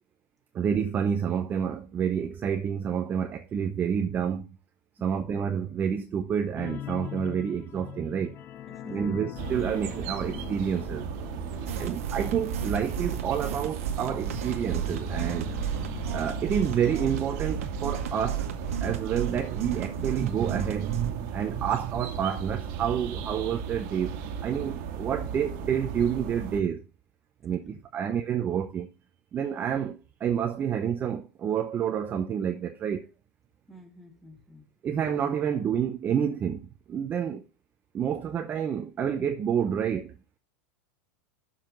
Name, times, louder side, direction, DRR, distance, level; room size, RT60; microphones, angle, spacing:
voice 1, 0.5-4.5 5.0-8.4 8.9-11.0 11.8-15.5 16.1-18.5 18.8-24.2 24.4-26.8 27.4-28.9 29.3-33.1 34.8-37.4 37.9-40.1, right 8 dB, 25° right, 0.8 m, -29 dB
voice 2, 5.0-5.4 8.7-9.4 11.5-12.4 27.6-27.8 33.7-34.6, equal, ahead, 2.2 m, -50 dB
sound 1, 6.6-19.8 20.1-20.3 20.7-20.8, left 11 dB, 30° left, 0.6 m, -43 dB
sound 2, 9.4-26.6, right 6 dB, 50° right, 1.7 m, -36 dB
sound 3, 11.7-21.1, right 9 dB, 90° right, 1.6 m, -34 dB
7.3 x 5.7 x 6.6 m
supercardioid pair, 140°, 8 cm